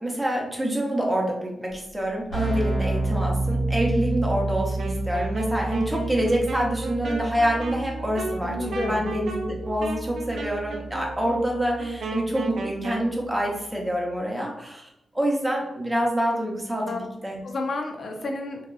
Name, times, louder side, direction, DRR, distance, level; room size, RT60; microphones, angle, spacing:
voice 1, 0.0-14.9 15.1-17.4, equal, 10° right, -1 dB, 0.7 m, -26 dB
Keyboard (musical), 1.7-1.8 2.0-12.6, right 2 dB, 85° left, 1.2 m, -30 dB
Wind instrument woodwind instrument, 4.8-13.1, right 2 dB, 70° right, 0.4 m, -34 dB
voice 2, 8.4-9.1 16.9-17.1 17.4-18.6, left 2 dB, 55° left, 2 dB, 0.5 m, -31 dB
2.8 x 2.4 x 2.3 m, 0.88 s
cardioid pair, 95°, 0 cm